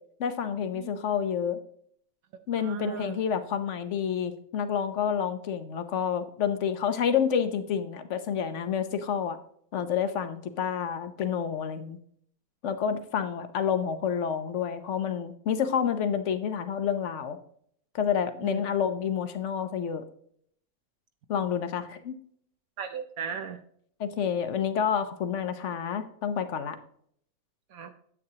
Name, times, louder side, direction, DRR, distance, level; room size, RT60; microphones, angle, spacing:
voice 1, 0.2-1.6 2.5-9.4 9.7-12.0 12.6-17.4 17.9-20.0 21.3-22.1 24.0-26.8, left 8 dB, 60° left, 10 dB, 1.0 m, -29 dB
voice 2, 2.6-3.2 18.4-18.6 22.8-23.6 27.7-27.9, right 7 dB, 70° right, 7 dB, 1.1 m, -36 dB
9.7 x 8.0 x 2.8 m, 0.64 s
omnidirectional pair, 1.6 m